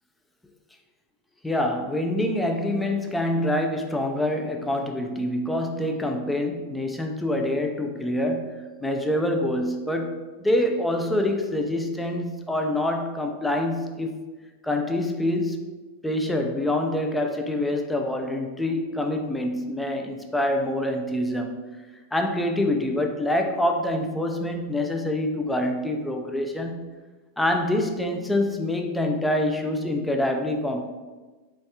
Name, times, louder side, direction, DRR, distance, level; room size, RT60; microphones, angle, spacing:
voice 1, 1.4-14.2 14.6-15.6 16.0-21.6 22.1-26.9 27.4-30.9, left 1 dB, 5° left, 3 dB, 0.5 m, -26 dB
3.6 x 3.2 x 2.7 m, 1.3 s
hypercardioid pair, 100°, 0 cm